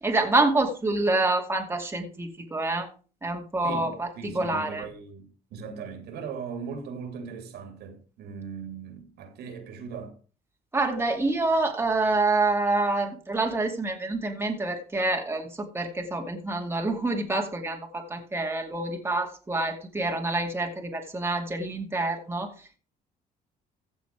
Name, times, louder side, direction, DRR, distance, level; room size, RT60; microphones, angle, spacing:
voice 1, 0.0-2.9 3.2-4.8 10.7-22.8, right 2 dB, 15° right, 2.3 m, -27 dB
voice 2, 3.6-10.1, right 5 dB, 75° right, 3.1 m, -39 dB
15.0 x 7.1 x 4.7 m
cardioid pair, 110°, 17 cm